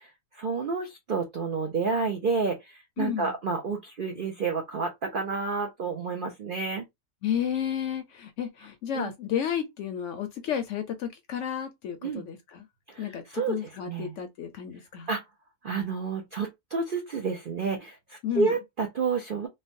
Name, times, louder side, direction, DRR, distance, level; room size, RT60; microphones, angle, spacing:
voice 1, 0.4-6.9 8.9-9.1 12.0-12.2 12.9-14.2 15.1-15.2 15.6-19.5, right 4 dB, 70° right, 0.5 m, -30 dB
voice 2, 3.0-3.3 7.2-12.6 13.0-15.1 18.2-18.5, left 9 dB, 65° left, 0.8 m, -32 dB
3.1 x 2.1 x 2.5 m
omnidirectional pair, 1.6 m